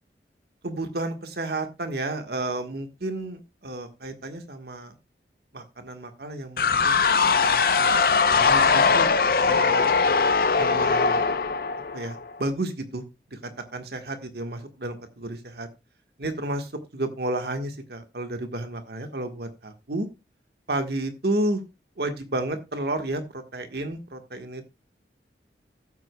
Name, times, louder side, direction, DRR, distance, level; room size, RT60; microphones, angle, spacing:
voice 1, 0.6-4.9 5.5-7.6 8.3-9.1 9.4-9.9 10.6-11.3 11.9-15.7 16.2-20.1 20.7-21.6 22.0-24.6, right 1 dB, 65° right, 7 dB, 1.4 m, -32 dB
sound 1, 6.6-12.3, left 5 dB, 55° left, 0.6 m, -21 dB
14.5 x 8.0 x 2.2 m, 0.24 s
head